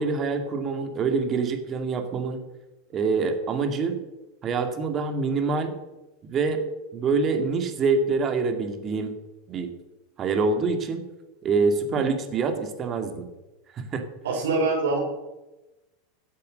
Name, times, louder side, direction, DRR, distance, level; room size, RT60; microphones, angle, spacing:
voice 1, 0.0-2.4 2.9-4.0 4.4-5.7 6.2-6.6 6.9-9.2 9.5-9.7 10.2-11.0 11.4-13.2 13.7-14.1, right 4 dB, 30° right, 6 dB, 2.3 m, -25 dB
voice 2, 14.2-15.0, right 3 dB, 85° right, -2 dB, 4.1 m, -24 dB
15.5 x 8.5 x 6.5 m, 1.0 s
supercardioid pair, 120°, 0 cm